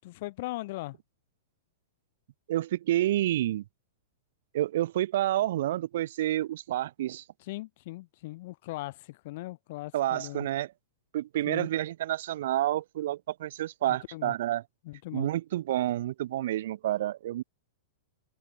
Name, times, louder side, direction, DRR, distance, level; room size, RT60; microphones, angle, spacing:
voice 1, 0.0-1.0 7.4-10.5 11.4-11.7 13.9-14.3 14.8-15.3, left 19 dB, 55° left, 6.6 m, -39 dB
voice 2, 2.5-3.6 4.5-7.2 9.9-10.7 11.1-14.6 15.1-17.4, right 13 dB, 65° right, 6.1 m, -29 dB
open air
hypercardioid pair, 110°, 0 cm